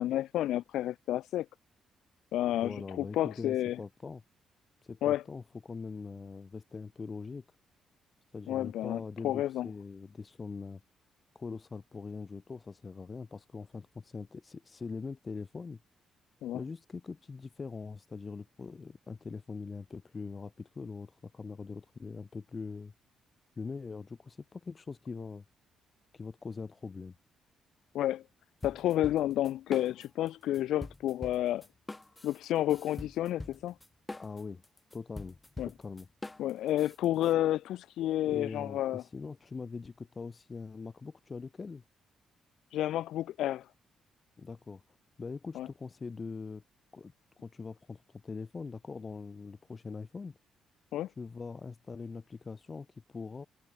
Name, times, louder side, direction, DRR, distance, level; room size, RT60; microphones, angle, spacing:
voice 1, 0.0-1.5 2.3-3.8 5.0-5.2 8.5-9.7 16.4-16.6 27.9-28.2 28.6-31.7 32.2-33.7 35.6-35.7 36.4-39.0 42.7-43.7 45.5-45.7 50.9-51.1, left 13 dB, 75° left, 1.0 m, -30 dB
voice 2, 2.6-4.2 4.8-7.4 8.3-10.8 11.3-15.8 16.5-22.9 23.6-25.4 26.1-27.1 34.2-34.6 34.9-35.4 35.6-36.1 38.2-41.8 44.4-44.8 45.2-46.6 46.9-50.4 51.2-53.5, left 4 dB, 40° left, 2.1 m, -42 dB
sound 1, 28.6-30.3 30.5-37.3, left 2 dB, 20° left, 4.5 m, -44 dB
supercardioid pair, 55°, 0 cm